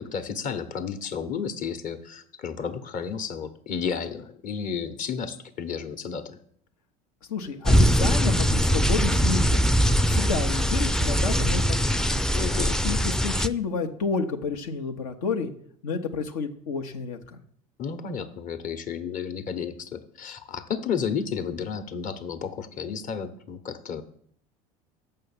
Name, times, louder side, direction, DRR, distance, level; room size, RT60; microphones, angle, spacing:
voice 1, 0.0-6.4 12.3-12.8 17.8-24.0, left 6 dB, 45° left, 10 dB, 1.1 m, -32 dB
voice 2, 7.3-9.6 10.1-12.2 12.8-15.5 15.8-17.4, left 5 dB, 80° left, 4 dB, 0.9 m, -30 dB
sound 1, 7.7-13.5, equal, 5° left, 0.4 m, -22 dB
6.7 x 5.6 x 7.2 m, 0.63 s
hypercardioid pair, 75°, 18 cm